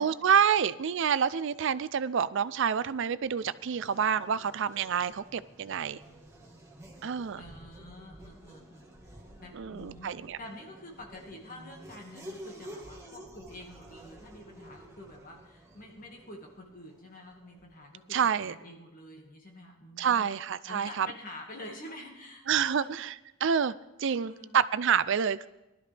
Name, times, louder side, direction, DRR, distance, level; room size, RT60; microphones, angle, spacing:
voice 1, 0.0-6.0 7.0-7.4 9.5-10.4 18.1-18.5 20.0-21.1 22.5-23.1 23.4-23.7 24.0-25.5, right 7 dB, 60° right, 16 dB, 0.4 m, -28 dB
Race car auto racing / Accelerating revving vroom, 2.4-17.9, right 1 dB, 15° right, 1.6 m, -51 dB
voice 2, 7.3-20.3 20.7-22.9 24.0-24.6, left 1 dB, 40° left, 1 dB, 1.9 m, -48 dB
19.0 x 12.0 x 3.4 m, 0.96 s
head